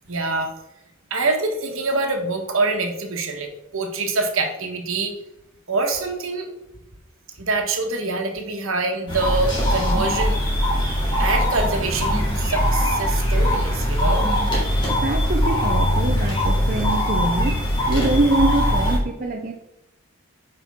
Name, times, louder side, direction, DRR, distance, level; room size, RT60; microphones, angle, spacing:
voice 1, 0.1-0.5 1.1-5.1 5.7-6.5 7.4-10.4 10.9-14.3, right 3 dB, 65° right, 3 dB, 1.3 m, -25 dB
sound 1, 9.1-19.0, equal, 20° left, 2.3 m, -21 dB
voice 2, 14.8-19.5, right 2 dB, 40° right, 1 dB, 0.6 m, -24 dB
8.0 x 5.3 x 3.6 m, 0.90 s
head